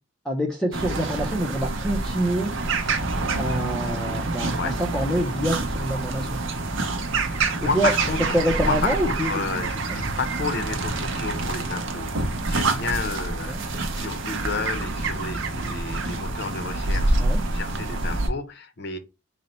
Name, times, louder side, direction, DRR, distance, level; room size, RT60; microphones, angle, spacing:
voice 1, 0.2-2.5 3.4-6.4 7.6-7.9 8.3-9.4 13.5-13.6 17.2-17.4, right 1 dB, 5° left, 0.5 m, -26 dB
sound 1, 0.7-18.3, right 3 dB, 65° right, 0.7 m, -27 dB
voice 2, 7.2-8.3 8.6-17.2 17.5-19.0, left 4 dB, 55° left, 0.6 m, -31 dB
4.0 x 2.1 x 4.1 m
head